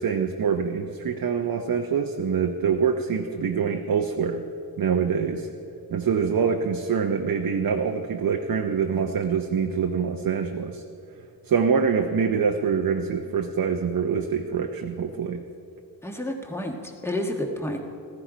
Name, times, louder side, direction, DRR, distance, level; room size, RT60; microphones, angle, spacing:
voice 1, 0.0-4.4 4.8-5.5 5.9-10.8 11.5-15.4, right 6 dB, 55° right, 4 dB, 0.7 m, -25 dB
voice 2, 16.0-17.8, left 1 dB, 5° left, 2 dB, 1.4 m, -30 dB
14.5 x 14.5 x 5.0 m, 2.5 s
wide cardioid pair, 125°, 41 cm